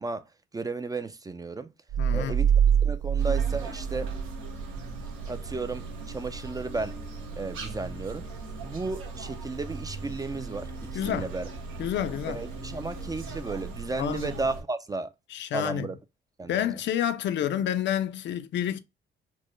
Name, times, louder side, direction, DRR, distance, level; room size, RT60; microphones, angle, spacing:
voice 1, 0.0-1.7 2.1-2.5 2.8-4.1 5.3-7.0 7.4-8.3 8.6-11.5 12.3-15.1 15.5-16.0 16.4-16.7, right 3 dB, 20° right, 0.4 m, -34 dB
sound 1, 1.9-4.9, right 8 dB, 65° right, 0.8 m, -25 dB
voice 2, 2.0-2.4 10.9-11.3 11.8-12.4 14.0-14.3 15.3-15.9 16.5-18.8, left 10 dB, 65° left, 0.4 m, -29 dB
sound 2, 3.2-14.6, right 3 dB, 85° right, 1.1 m, -39 dB
4.3 x 2.1 x 3.0 m
cardioid pair, 90°, 20 cm